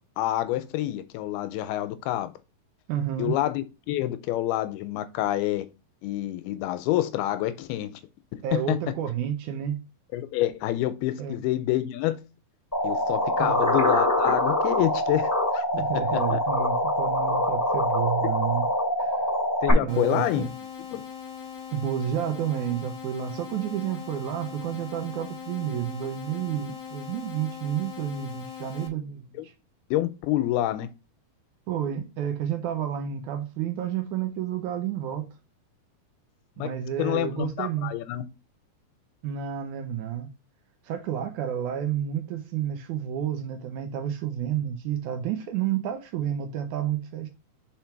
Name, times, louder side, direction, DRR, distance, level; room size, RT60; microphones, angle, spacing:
voice 1, 0.2-2.3 3.2-5.7 6.0-7.9 8.7-8.8 10.1-12.2 12.8-15.6 16.3-16.4 19.6-20.5 20.9-21.0 29.4-29.5 29.9-30.9 36.6-36.7 37.0-38.3, left 14 dB, 85° left, 2.5 m, -27 dB
voice 2, 2.9-3.4 8.4-9.8 11.2-11.4 13.4-13.6 15.7-18.7 19.0-19.2 19.8-20.5 21.7-29.5 31.7-35.3 36.6-37.9 39.2-40.3 40.8-47.3, right 10 dB, 85° right, 1.7 m, -30 dB
sound 1, 12.7-19.7, left 1 dB, 5° left, 1.4 m, -24 dB
sound 2, 19.9-28.9, left 7 dB, 60° left, 1.7 m, -40 dB
5.6 x 4.4 x 4.6 m
omnidirectional pair, 4.6 m